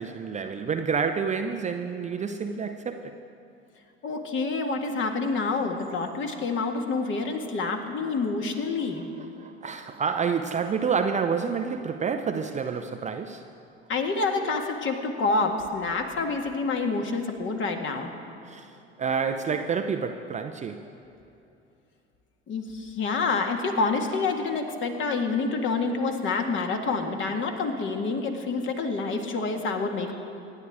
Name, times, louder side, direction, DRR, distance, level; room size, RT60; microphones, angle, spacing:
voice 1, 0.0-3.1 9.4-13.4 18.4-18.7 19.0-20.8, right 6 dB, 20° right, 7 dB, 0.6 m, -28 dB
voice 2, 4.0-9.1 13.9-18.1 22.5-30.1, left 3 dB, 35° left, 4 dB, 1.8 m, -27 dB
25.5 x 10.5 x 3.6 m, 2.7 s
figure-of-eight pair, 70°, 32 cm